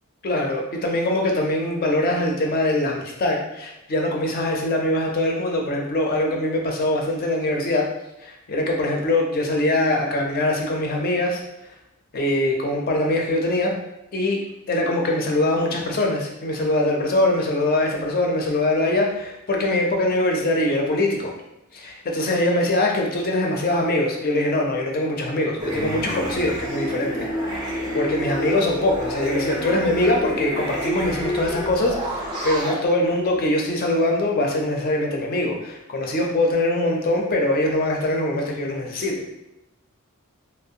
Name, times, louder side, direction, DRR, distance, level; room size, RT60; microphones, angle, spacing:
voice 1, 0.2-7.9 8.2-11.4 12.1-13.8 14.1-14.4 14.7-21.3 21.7-27.6 27.9-39.2, left 1 dB, 45° left, 0 dB, 0.4 m, -23 dB
sound 1, 25.6-32.8, equal, 20° right, 0.5 m, -28 dB
2.4 x 2.0 x 2.7 m, 0.90 s
head